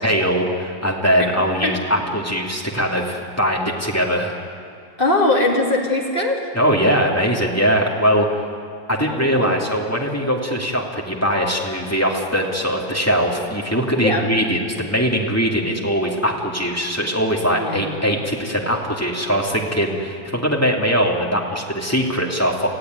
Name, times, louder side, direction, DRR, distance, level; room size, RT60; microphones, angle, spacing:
voice 1, 0.0-4.4 6.5-8.3 8.9-22.7, equal, 10° left, -1 dB, 2.5 m, -21 dB
voice 2, 5.0-6.4 9.0-9.6 14.0-14.3 17.6-17.9, left 2 dB, 30° left, -2 dB, 3.4 m, -21 dB
26.5 x 15.5 x 9.5 m, 2.3 s
omnidirectional pair, 1.9 m